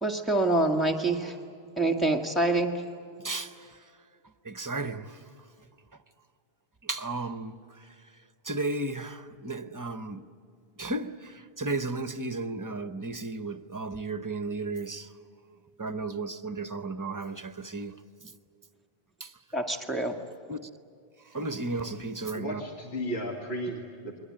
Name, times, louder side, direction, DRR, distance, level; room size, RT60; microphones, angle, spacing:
voice 1, 0.0-1.4 1.8-2.8 19.5-20.2, right 2 dB, ahead, 1.9 m, -26 dB
voice 2, 3.2-3.8 4.4-5.2 6.8-7.6 8.4-10.2 10.8-15.1 15.8-18.0 18.2-18.3 19.2-19.3 20.5-20.6 21.3-22.6, right 2 dB, 20° right, 0.7 m, -34 dB
voice 3, 22.3-24.2, equal, 80° left, 2.5 m, -34 dB
28.5 x 22.5 x 8.8 m
omnidirectional pair, 1.1 m